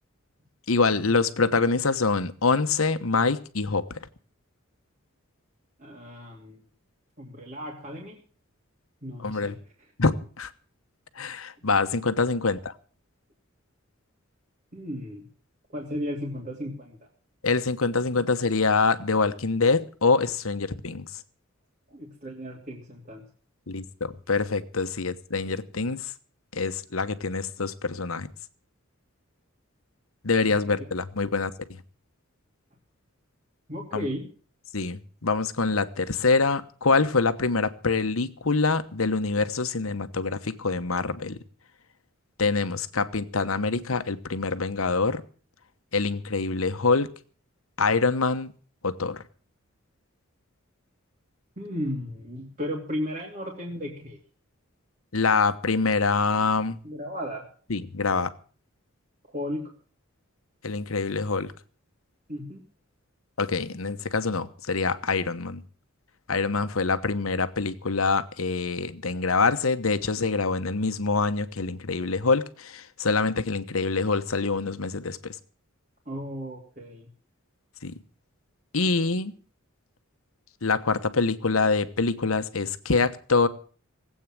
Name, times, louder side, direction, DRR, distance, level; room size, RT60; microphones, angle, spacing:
voice 1, 0.7-4.0 9.2-9.5 10.0-10.5 11.2-12.7 17.4-21.2 23.7-26.1 26.5-28.3 30.2-31.5 33.9-34.1 34.7-41.4 42.4-45.2 45.9-47.1 47.8-48.5 48.8-49.2 55.1-56.8 57.7-58.3 60.6-61.5 63.4-65.6 66.3-75.4 77.8-78.0 78.7-79.3 80.6-83.5, left 4 dB, 80° left, 11 dB, 1.2 m, -25 dB
voice 2, 5.8-6.6 7.2-8.2 9.0-9.6 14.7-15.2 15.7-17.1 21.9-23.2 30.4-30.7 33.7-34.3 51.6-54.2 56.8-57.4 59.3-59.7 62.3-62.6 76.1-77.1, equal, 40° right, -2 dB, 2.7 m, -35 dB
19.0 x 8.6 x 7.5 m, 0.42 s
head